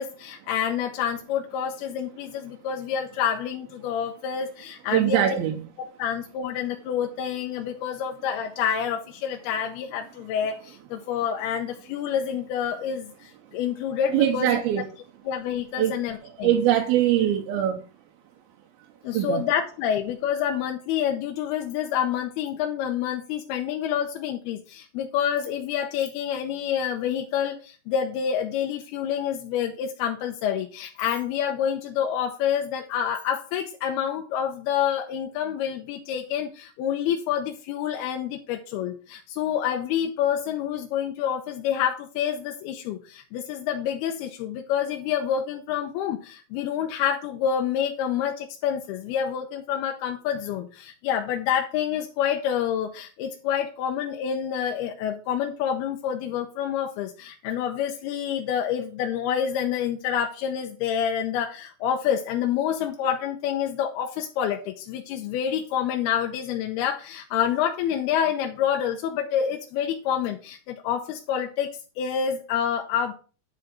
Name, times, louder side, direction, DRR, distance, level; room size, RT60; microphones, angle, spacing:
voice 1, 0.0-5.4 5.8-14.6 15.3-16.5 19.0-73.1, left 9 dB, 80° left, 2.7 m, -28 dB
voice 2, 4.9-5.6 14.1-14.8 15.8-15.9 16.2-17.8 19.1-19.4, right 11 dB, 80° right, 2.7 m, -22 dB
10.0 x 5.0 x 5.9 m
omnidirectional pair, 4.5 m